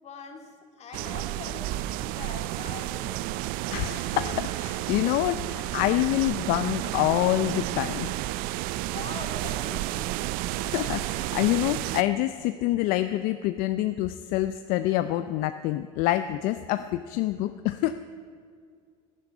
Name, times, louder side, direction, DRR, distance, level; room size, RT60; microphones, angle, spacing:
voice 1, 0.0-3.3 8.9-10.2, left 5 dB, 45° left, 4 dB, 2.4 m, -42 dB
sound 1, 0.9-12.0, right 16 dB, 70° right, 0.4 m, -31 dB
voice 2, 3.7-8.3 10.6-18.0, left 14 dB, 70° left, 11 dB, 0.6 m, -26 dB
13.0 x 10.5 x 8.8 m, 2.1 s
supercardioid pair, 95°, 16 cm